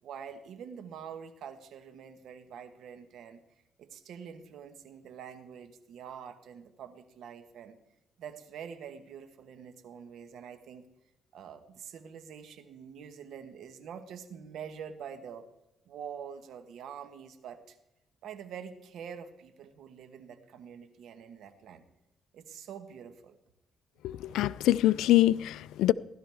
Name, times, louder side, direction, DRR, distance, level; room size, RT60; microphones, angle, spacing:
voice 1, 0.0-3.4 3.8-7.8 8.2-10.9 11.3-15.5 15.9-17.8 18.2-21.8 22.3-23.4, right 7 dB, 75° right, 1.3 m, -45 dB
voice 2, 24.0-25.9, left 14 dB, 90° left, 0.3 m, -24 dB
16.0 x 12.0 x 3.5 m
cardioid pair, 90°, 0 cm